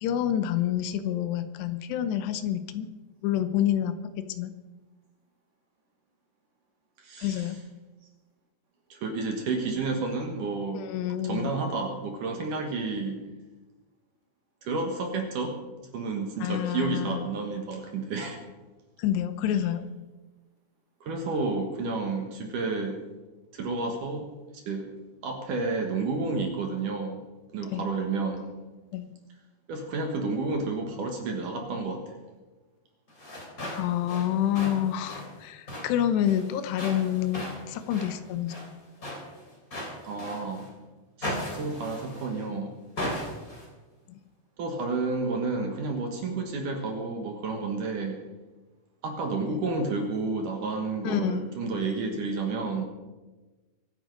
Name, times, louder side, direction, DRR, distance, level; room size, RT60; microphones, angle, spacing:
voice 1, 0.0-2.9 3.2-4.5 7.2-7.6 10.7-11.5 16.4-17.3 19.0-19.9 27.7-27.9 28.9-29.1 33.8-38.7 44.1-44.2 49.5-49.6 51.0-51.5, left 11 dB, 80° left, 11 dB, 2.9 m, -28 dB
voice 2, 7.0-7.5 8.9-10.9 11.2-13.2 14.6-15.6 15.9-18.4 21.0-23.0 23.5-24.9 25.2-27.2 27.5-28.5 29.7-32.2 40.0-40.7 41.2-42.7 44.6-48.2 49.0-52.8, right 3 dB, 60° right, 3 dB, 2.4 m, -31 dB
sound 1, 33.1-40.7 41.2-42.5 43.0-43.7, left 1 dB, 20° left, 3.0 m, -38 dB
24.5 x 8.8 x 5.2 m, 1.2 s
omnidirectional pair, 5.1 m